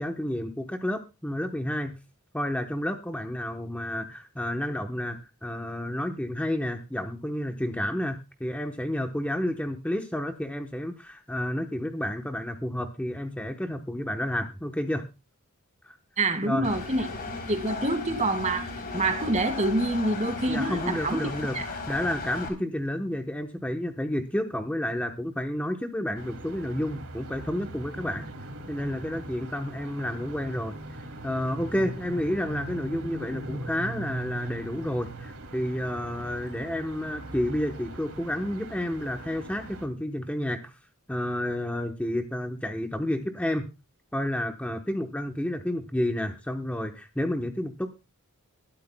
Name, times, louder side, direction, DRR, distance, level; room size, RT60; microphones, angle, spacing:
voice 1, 0.0-2.0 2.3-15.1 15.8-16.0 16.4-16.8 20.5-28.3 28.7-40.7 41.1-43.7 44.1-47.9, left 1 dB, 5° left, 1.0 m, -30 dB
voice 2, 16.2-17.0 17.5-18.7 18.9-21.3 21.5-21.6, right 2 dB, 35° right, 2.0 m, -26 dB
Engine, 16.6-22.5, left 3 dB, 45° left, 3.4 m, -36 dB
sound 1, 26.2-39.9, right 2 dB, 65° right, 2.6 m, -40 dB
21.5 x 12.5 x 2.2 m
head